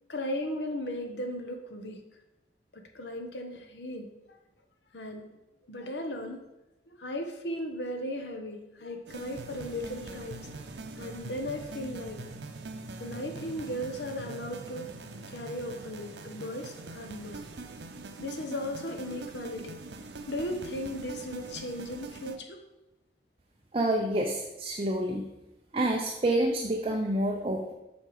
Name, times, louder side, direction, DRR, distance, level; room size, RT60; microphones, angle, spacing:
voice 1, 0.1-2.0 2.7-4.1 4.9-5.3 5.7-6.4 6.9-10.5 10.9-12.3 13.0-14.9 15.3-17.4 18.2-19.8 20.3-22.6, left 1 dB, 75° left, 4 dB, 1.1 m, -36 dB
sound 1, 9.1-22.4, right 2 dB, 80° right, 0.8 m, -43 dB
voice 2, 23.7-25.3 25.7-27.7, right 1 dB, 30° right, 1 dB, 0.7 m, -28 dB
8.0 x 5.6 x 4.9 m, 0.95 s
head